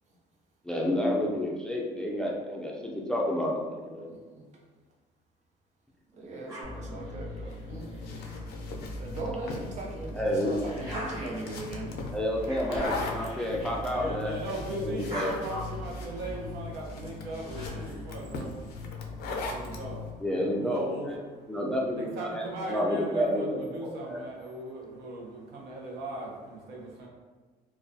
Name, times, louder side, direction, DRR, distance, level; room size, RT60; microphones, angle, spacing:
voice 1, 0.6-4.1 10.1-10.5 12.1-14.3 14.8-15.6 20.2-21.2 21.5-22.4 22.7-24.2, equal, 5° left, -2 dB, 0.3 m, -30 dB
voice 2, 6.2-7.8 9.0-11.9, right 2 dB, 45° right, -2 dB, 0.7 m, -38 dB
sound 1, 6.5-9.2 9.7-14.5 14.8-18.1, equal, 20° right, 1.2 m, -44 dB
sound 2, 6.6-20.2, left 2 dB, 70° right, 1.2 m, -40 dB
sound 3, 7.5-19.9, left 3 dB, 70° left, 0.4 m, -41 dB
voice 3, 13.9-20.2 20.6-27.1, right 1 dB, 90° right, -2 dB, 0.6 m, -39 dB
2.3 x 2.2 x 2.6 m, 1.4 s
cardioid pair, 110°, 17 cm